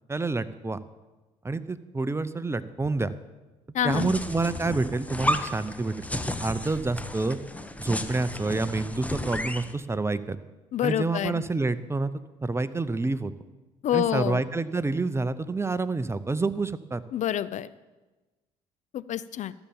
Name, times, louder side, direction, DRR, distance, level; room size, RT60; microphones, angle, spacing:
voice 1, 0.1-0.8 1.4-3.1 3.8-7.4 7.8-10.4 10.8-12.1 12.4-13.3 13.9-17.0, right 3 dB, 15° right, 14 dB, 0.8 m, -28 dB
voice 2, 3.7-4.1 10.7-11.4 13.8-14.4 17.1-17.7 18.9-19.5, left 11 dB, 50° left, 17 dB, 0.5 m, -27 dB
sound 1, 3.9-9.7, left 1 dB, 10° left, 1.0 m, -33 dB
14.0 x 7.1 x 7.1 m, 1.2 s
hypercardioid pair, 60°, 16 cm